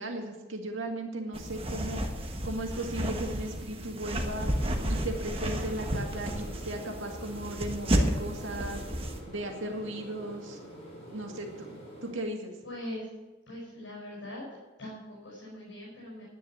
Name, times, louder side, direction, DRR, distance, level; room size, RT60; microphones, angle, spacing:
voice 1, 0.0-2.0 2.4-4.5 4.9-8.8 9.3-10.6 11.1-12.5, right 1 dB, 85° right, 2 dB, 2.0 m, -36 dB
sound 1, 1.3-9.2, equal, 30° right, 1.2 m, -32 dB
sound 2, 4.3-12.1, equal, 35° left, 5.0 m, -46 dB
voice 2, 12.6-13.1 13.5-14.4 14.8-16.2, left 1 dB, 80° left, -6 dB, 5.2 m, -41 dB
10.0 x 10.0 x 7.2 m, 1.2 s
head